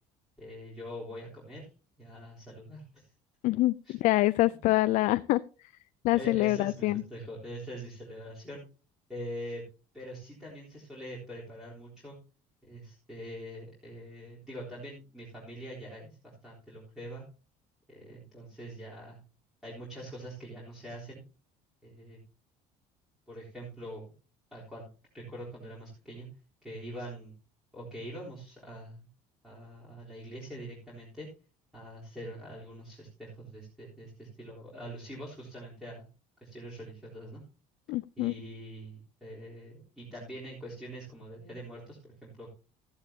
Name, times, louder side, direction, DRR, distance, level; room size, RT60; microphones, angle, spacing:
voice 1, 0.4-1.7 2.0-3.1 3.8-3.9 4.4-4.6 6.1-8.6 9.1-9.6 9.9-12.2 12.6-17.3 17.9-19.2 19.6-21.2 21.8-22.2 23.3-24.1 24.5-24.9 25.1-26.3 26.6-27.4 27.7-29.1 29.4-31.3 31.7-36.0 36.4-37.4 38.2-42.5, equal, ahead, -6 dB, 3.8 m, -44 dB
voice 2, 3.4-5.4 6.0-7.0 37.9-38.3, left 18 dB, 60° left, 14 dB, 0.4 m, -25 dB
13.5 x 11.0 x 2.8 m, 0.35 s
cardioid pair, 150°, 15 cm